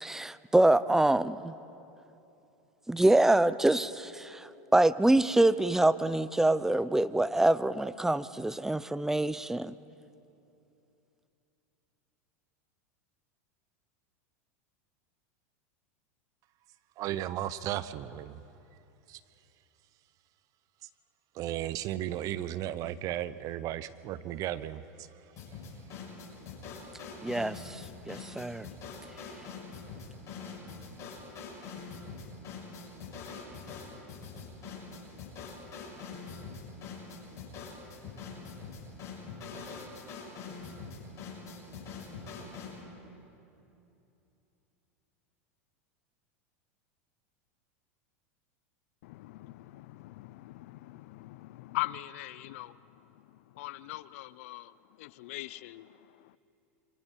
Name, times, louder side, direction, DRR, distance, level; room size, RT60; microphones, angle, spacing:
voice 1, 0.0-1.5 2.9-9.7 27.2-28.7, right 2 dB, 5° right, 17 dB, 0.6 m, -25 dB
voice 2, 17.0-18.4 19.1-19.2 21.3-25.1, right 12 dB, 50° right, 15 dB, 0.8 m, -35 dB
sound 1, 25.4-42.8, left 4 dB, 45° left, 7.3 m, -44 dB
voice 3, 49.0-56.4, left 17 dB, 65° left, 18 dB, 0.5 m, -42 dB
28.0 x 24.5 x 4.7 m, 2.9 s
hypercardioid pair, 100°, 8 cm